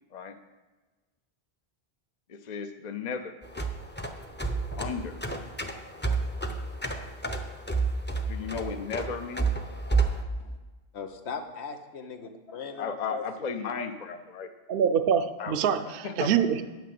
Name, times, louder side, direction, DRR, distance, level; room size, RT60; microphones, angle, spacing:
voice 1, 2.3-3.3 4.8-5.2 8.3-9.5 12.8-14.5 15.4-15.5 16.0-16.3, left 6 dB, 50° left, 7 dB, 0.7 m, -34 dB
sound 1, 3.4-10.2, right 4 dB, 10° left, 0.6 m, -30 dB
voice 2, 10.9-13.5, left 5 dB, 85° left, 6 dB, 1.2 m, -39 dB
voice 3, 14.7-16.6, right 8 dB, 65° right, 10 dB, 0.7 m, -25 dB
9.2 x 6.0 x 7.6 m, 1.2 s
omnidirectional pair, 1.1 m